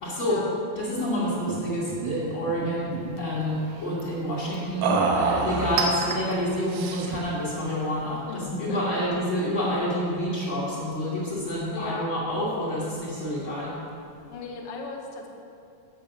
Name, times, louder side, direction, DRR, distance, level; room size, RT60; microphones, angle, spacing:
voice 1, 0.0-0.4 0.8-13.8, equal, 45° left, -9 dB, 2.2 m, -28 dB
sound 1, 1.5-1.7 1.9-2.1 2.5-3.2 4.8-6.1 6.7-7.3, right 4 dB, 90° right, 2.4 m, -27 dB
Chink clink, 2.8-8.4, right 3 dB, 65° right, 1.9 m, -36 dB
voice 2, 8.3-9.0 11.7-12.1 14.3-15.3, left 3 dB, 70° left, 1 dB, 1.4 m, -37 dB
8.7 x 7.4 x 5.9 m, 2.6 s
omnidirectional pair, 3.6 m